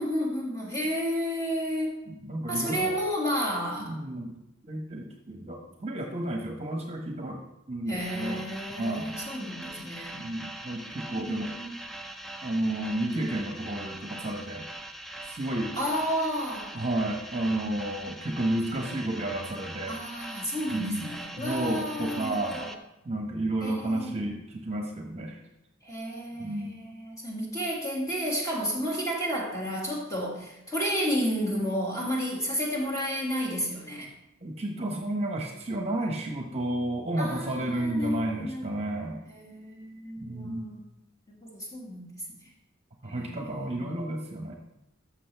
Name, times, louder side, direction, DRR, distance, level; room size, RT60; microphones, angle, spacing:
voice 1, 0.0-2.0 2.5-3.9 7.9-10.2 11.1-11.8 15.7-16.7 19.9-22.7 23.6-24.2 25.8-34.1 37.2-38.7 39.3-40.9 41.3-42.2 43.1-44.0, equal, 15° left, -3 dB, 2.1 m, -32 dB
voice 2, 2.1-2.9 3.8-4.4 4.7-8.4 8.8-9.1 10.1-11.5 12.4-14.7 15.3-15.8 16.7-20.0 20.7-22.6 23.0-25.4 26.4-26.8 34.4-39.2 40.2-40.7 43.0-44.5, right 1 dB, 30° right, 2 dB, 1.1 m, -31 dB
sound 1, 8.0-22.7, right 1 dB, ahead, 0.6 m, -42 dB
13.5 x 6.3 x 3.4 m, 0.92 s
head